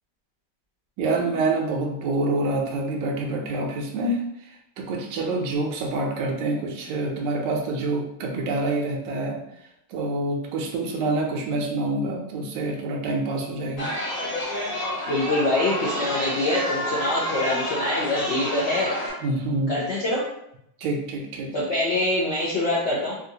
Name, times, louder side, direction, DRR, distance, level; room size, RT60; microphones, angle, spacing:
voice 1, 1.0-9.4 9.9-13.9 19.2-19.7 20.8-21.5, right 2 dB, 85° right, 1 dB, 1.3 m, -27 dB
Chatter, 13.8-19.1, equal, 45° left, 1.8 m, -29 dB
voice 2, 15.1-18.9 19.7-20.2 21.5-23.1, left 2 dB, 65° left, -6 dB, 0.7 m, -24 dB
3.8 x 2.4 x 2.7 m, 0.76 s
omnidirectional pair, 1.9 m